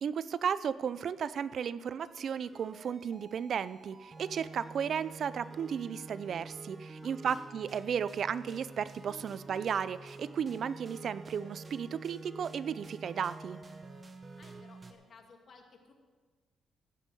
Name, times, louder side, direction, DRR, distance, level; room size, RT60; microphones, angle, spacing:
voice 1, 0.0-13.6, right 7 dB, 60° right, 16 dB, 0.4 m, -34 dB
sound 1, 2.0-14.9, right 3 dB, 30° right, 1.1 m, -49 dB
voice 2, 7.0-7.5 14.4-15.9, left 4 dB, 50° left, 3 dB, 1.9 m, -57 dB
15.5 x 5.5 x 7.5 m, 1.4 s
cardioid pair, 90°, 0 cm